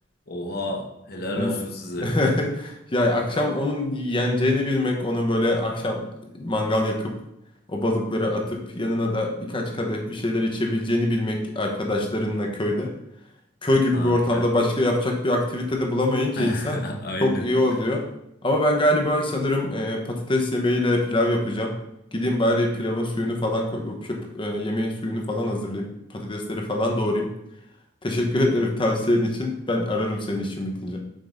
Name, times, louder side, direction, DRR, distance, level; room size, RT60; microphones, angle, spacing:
voice 1, 0.3-2.1 13.9-14.4 16.4-17.5, left 1 dB, 55° left, 1 dB, 1.0 m, -31 dB
voice 2, 2.0-6.0 6.3-7.1 7.7-12.9 13.6-16.8 17.2-18.1 18.4-21.8 22.1-27.3 28.0-31.0, left 1 dB, 25° left, 1 dB, 1.0 m, -24 dB
7.5 x 5.3 x 2.7 m, 0.82 s
head